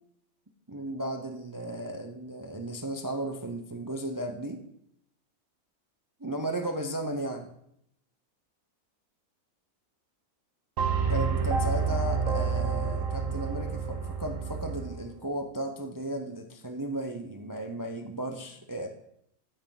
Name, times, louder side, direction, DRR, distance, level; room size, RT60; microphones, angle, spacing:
voice 1, 0.7-4.6 6.2-7.5 11.1-18.9, right 1 dB, 30° right, 5 dB, 0.4 m, -35 dB
sound 1, 10.8-15.0, right 5 dB, 60° right, 1.4 m, -29 dB
9.4 x 8.8 x 3.8 m, 0.74 s
omnidirectional pair, 1.6 m